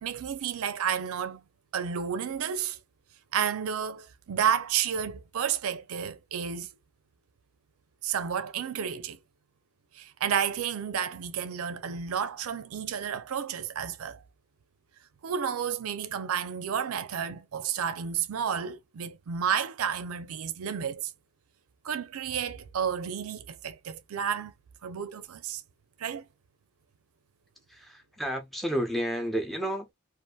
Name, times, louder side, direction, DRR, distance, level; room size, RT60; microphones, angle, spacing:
voice 1, 0.0-1.4 1.7-2.8 3.3-6.7 8.0-9.2 9.9-14.2 15.2-21.1 21.8-24.5 24.8-25.6 26.0-26.2, right 8 dB, 85° right, 0.4 m, -31 dB
voice 2, 27.7-29.9, equal, ahead, 0.5 m, -31 dB
2.6 x 2.4 x 2.2 m
head